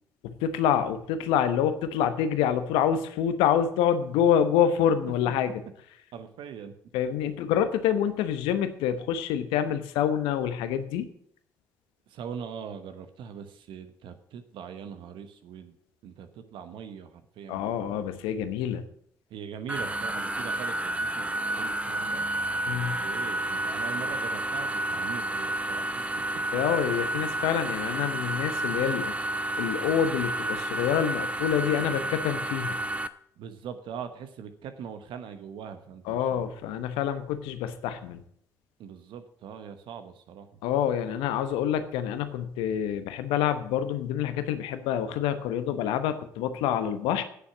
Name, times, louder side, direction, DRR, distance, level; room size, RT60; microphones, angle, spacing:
voice 1, 0.2-5.6 6.9-11.1 17.5-18.9 22.7-23.0 26.5-29.1 29.6-32.8 36.1-38.2 40.6-47.2, left 9 dB, 75° left, 11 dB, 1.0 m, -27 dB
voice 2, 6.1-6.7 12.1-15.7 16.0-18.0 19.3-21.3 21.6-22.2 22.7-26.0 33.4-36.5 38.8-40.6, right 7 dB, 65° right, 9 dB, 1.2 m, -41 dB
sound 1, 19.7-33.1, right 1 dB, 15° right, 0.8 m, -30 dB
9.4 x 7.0 x 8.8 m, 0.67 s
hypercardioid pair, 50°, 9 cm